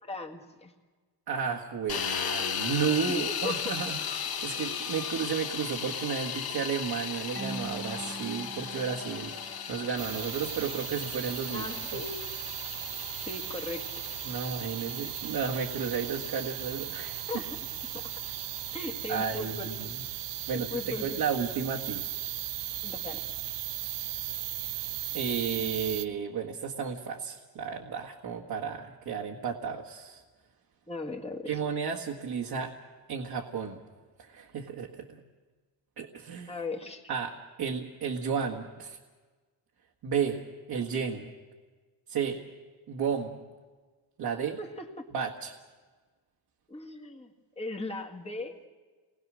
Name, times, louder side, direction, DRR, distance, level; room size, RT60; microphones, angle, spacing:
voice 1, 0.0-0.7 3.1-3.7 11.5-12.2 13.3-13.9 17.3-17.6 17.9-18.1 18.7-19.7 20.5-21.2 22.8-23.3 30.9-31.6 36.5-37.1 44.6-45.1 46.7-48.5, left 2 dB, 15° left, 1 dB, 1.9 m, -38 dB
voice 2, 1.3-9.3 9.7-11.6 11.9-12.0 14.2-17.2 19.1-19.9 20.5-22.1 25.1-30.2 31.5-32.7 33.1-33.8 34.2-35.2 36.0-36.6 37.1-39.0 40.0-40.4 40.7-41.3 42.1-42.4 42.9-43.4 44.2-44.6 45.1-45.5, right 6 dB, 60° right, 0 dB, 1.8 m, -33 dB
sound 1, 1.9-19.8, left 7 dB, 60° left, 1.9 m, -37 dB
Marimba xylophone / Wood, 7.4-10.1, right 3 dB, 20° right, 1.2 m, -43 dB
sound 2, 10.0-26.1, right 13 dB, 80° right, 0.8 m, -37 dB
30.0 x 20.5 x 6.3 m, 1.4 s
wide cardioid pair, 175°, 41 cm